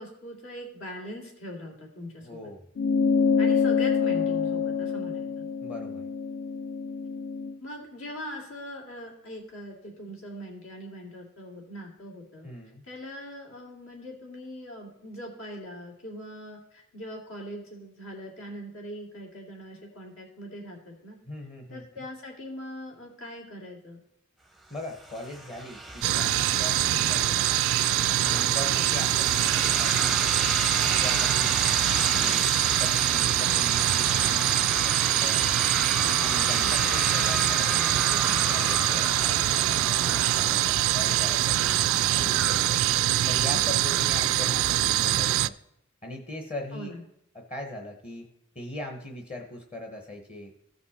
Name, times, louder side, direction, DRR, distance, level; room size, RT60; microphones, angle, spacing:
voice 1, 0.0-2.5 3.4-5.5 7.6-12.5 12.8-21.2 21.7-24.0 36.5-36.8 42.2-42.4 43.4-43.8 46.7-47.0, equal, 75° left, -1 dB, 2.7 m, -41 dB
voice 2, 2.2-2.7 5.6-6.1 12.4-12.8 21.3-22.0 24.7-27.5 28.2-29.9 30.8-31.5 32.0-35.5 36.2-42.8 43.3-45.6 46.0-46.9 47.3-48.3 48.5-50.5, left 1 dB, 30° left, 2 dB, 0.9 m, -40 dB
sound 1, 2.8-7.5, left 5 dB, 60° left, 0.4 m, -26 dB
sound 2, 24.8-42.7, right 1 dB, ahead, 0.6 m, -33 dB
sound 3, 26.0-45.5, right 13 dB, 70° right, 0.3 m, -24 dB
15.5 x 5.3 x 4.2 m, 0.79 s
head